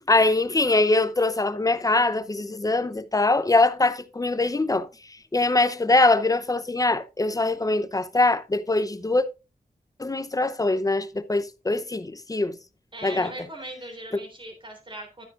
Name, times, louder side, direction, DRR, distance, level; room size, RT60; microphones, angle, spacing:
voice 1, 0.1-4.9 5.3-9.2 10.0-12.6 13.0-13.3, left 2 dB, 20° left, 0.7 m, -22 dB
voice 2, 12.9-15.2, right 1 dB, 30° right, 3.4 m, -39 dB
12.0 x 9.0 x 2.5 m
wide cardioid pair, 115°, 16 cm